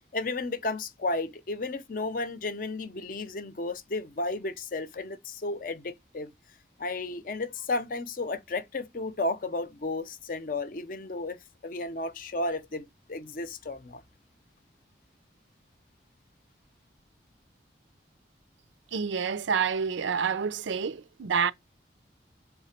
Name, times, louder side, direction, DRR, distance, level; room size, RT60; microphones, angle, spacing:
voice 1, 0.1-6.3 6.8-14.0, left 2 dB, 45° left, 0.6 m, -33 dB
voice 2, 18.9-21.5, right 6 dB, 85° right, 0.5 m, -28 dB
5.7 x 4.1 x 4.2 m
head